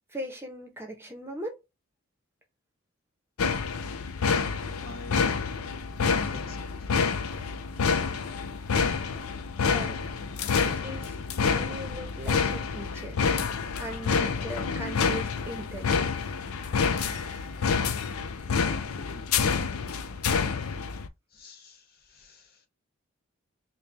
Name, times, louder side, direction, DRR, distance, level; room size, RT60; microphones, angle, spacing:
voice 1, 0.1-1.6 9.6-10.0 10.6-13.2 13.8-15.9 17.1-17.2, equal, 10° right, 0.8 m, -39 dB
sound 1, 3.4-21.1, left 5 dB, 80° left, 0.5 m, -28 dB
voice 2, 4.8-5.3 6.3-6.9 18.9-19.3 21.3-22.7, left 3 dB, 45° left, 0.8 m, -48 dB
4.3 x 2.2 x 3.3 m
head